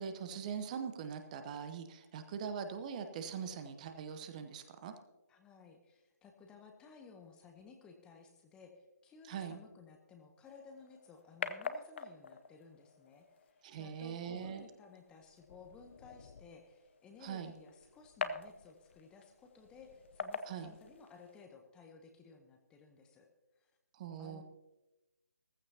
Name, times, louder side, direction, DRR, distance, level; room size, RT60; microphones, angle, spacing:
voice 1, 0.0-4.9 9.2-9.6 13.6-14.6 17.2-17.5 20.4-20.7 23.9-24.4, right 7 dB, 25° right, 8 dB, 0.9 m, -42 dB
voice 2, 5.3-23.3 23.6-23.7 24.2-24.4, left 5 dB, 10° left, 4 dB, 0.8 m, -57 dB
sound 1, 10.4-21.4, left 5 dB, 45° left, 0.8 m, -46 dB
16.0 x 14.5 x 2.8 m, 1.1 s
figure-of-eight pair, 145°, 9 cm